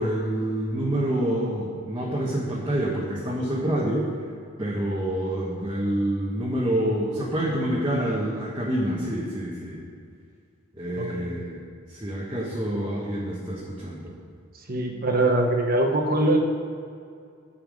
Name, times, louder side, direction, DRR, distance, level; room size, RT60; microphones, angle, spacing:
voice 1, 0.0-4.1 4.6-9.8 10.7-11.6 11.9-14.1, right 1 dB, 20° right, -5 dB, 1.3 m, -27 dB
voice 2, 10.9-11.3 14.7-16.4, right 1 dB, 45° right, 3 dB, 1.1 m, -22 dB
8.9 x 5.7 x 7.7 m, 2.3 s
head